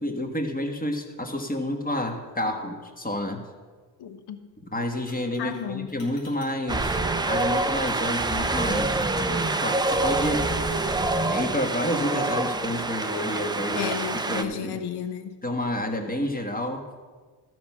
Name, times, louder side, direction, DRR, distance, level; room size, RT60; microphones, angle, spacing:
voice 1, 0.0-3.4 4.7-7.0 7.2-9.0 9.6-10.4 11.3-13.9 14.3-14.8 15.4-17.0, left 1 dB, 20° left, 1.4 m, -29 dB
voice 2, 4.0-4.4 5.4-6.0 13.7-15.4, left 8 dB, 60° left, 1.1 m, -33 dB
Chink clink, 5.1-5.6 5.9-6.6 6.8-7.0 7.3-10.8, left 3 dB, 80° left, 2.9 m, -48 dB
Wind, 6.7-14.4, right 2 dB, 10° right, 0.5 m, -26 dB
13.0 x 6.2 x 5.7 m
cardioid pair, 105°, 45 cm